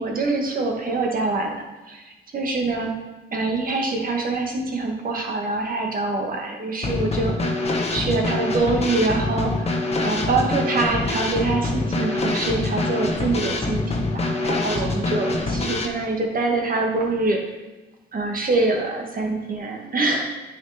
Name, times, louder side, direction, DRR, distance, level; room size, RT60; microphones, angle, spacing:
voice 1, 0.0-1.6 1.9-2.9 3.3-7.5 7.9-17.4 18.1-20.3, right 3 dB, 45° right, 1 dB, 1.9 m, -25 dB
Drum kit / Snare drum, 6.8-15.9, left 2 dB, 30° left, 1.3 m, -25 dB
9.6 x 5.2 x 4.3 m, 1.1 s
cardioid pair, 90°, 20 cm